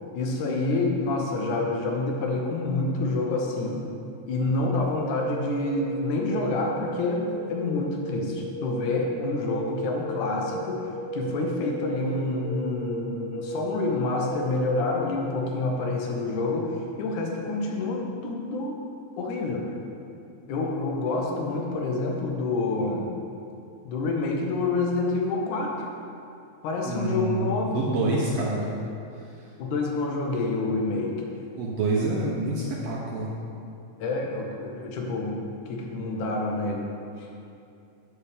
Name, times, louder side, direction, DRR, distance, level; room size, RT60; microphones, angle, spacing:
voice 1, 0.1-3.8 4.3-10.9 11.1-18.8 19.2-19.7 20.5-23.1 23.8-25.7 26.6-27.9 29.6-31.1 34.0-35.4 35.7-36.9 37.2-37.3, left 3 dB, 80° left, 0 dB, 2.3 m, -27 dB
sound 1, 4.9-14.5, right 2 dB, 50° right, 1.6 m, -35 dB
voice 2, 26.8-28.7 31.5-33.3, right 2 dB, 75° right, -4 dB, 1.5 m, -27 dB
7.2 x 7.1 x 3.4 m, 2.6 s
omnidirectional pair, 3.5 m